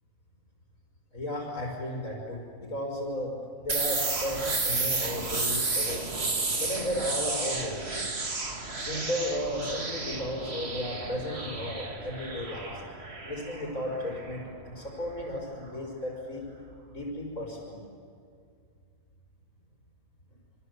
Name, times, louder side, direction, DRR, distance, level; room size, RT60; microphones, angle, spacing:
voice 1, 1.1-6.1 6.5-8.2 8.7-12.8 13.2-16.5 16.9-17.8, equal, 80° left, -3 dB, 5.2 m, -34 dB
sound 1, 3.7-15.3, right 3 dB, 50° right, 2.4 m, -32 dB
28.5 x 25.5 x 8.0 m, 2.2 s
omnidirectional pair, 1.4 m